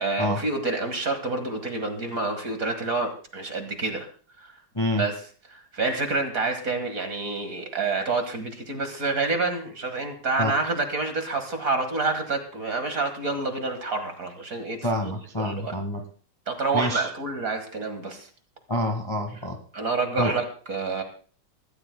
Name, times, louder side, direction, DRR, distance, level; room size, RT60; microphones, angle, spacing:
voice 1, 0.0-4.1 4.4-4.5 5.0-5.1 5.5-14.8 15.4-15.7 16.5-18.3 19.7-21.0, right 3 dB, 40° right, 6 dB, 2.0 m, -28 dB
voice 2, 14.8-16.0 16.7-17.1 18.7-19.6 20.2-20.3, left 1 dB, 15° left, 4 dB, 1.3 m, -27 dB
23.5 x 14.0 x 2.2 m, 0.41 s
omnidirectional pair, 2.4 m